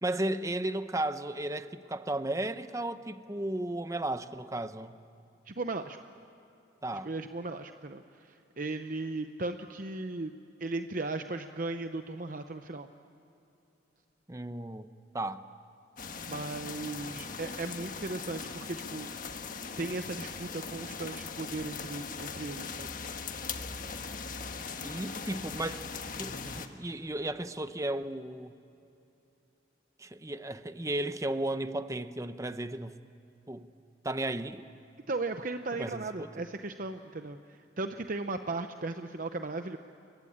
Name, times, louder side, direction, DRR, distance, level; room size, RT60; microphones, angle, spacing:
voice 1, 0.0-5.0 6.8-7.1 14.3-14.9 15.1-15.4 24.8-25.8 26.2-28.5 30.0-33.0 33.5-33.7 34.0-34.6 35.7-36.3, right 1 dB, 15° right, 11 dB, 0.8 m, -34 dB
voice 2, 5.5-6.0 7.0-8.0 8.3-10.3 10.6-12.9 16.3-19.1 19.8-22.9 35.1-37.4 37.8-39.8, right 3 dB, 45° right, 7 dB, 0.8 m, -36 dB
sound 1, 16.0-26.7, left 5 dB, 45° left, 1.4 m, -40 dB
29.5 x 23.0 x 8.6 m, 2.8 s
head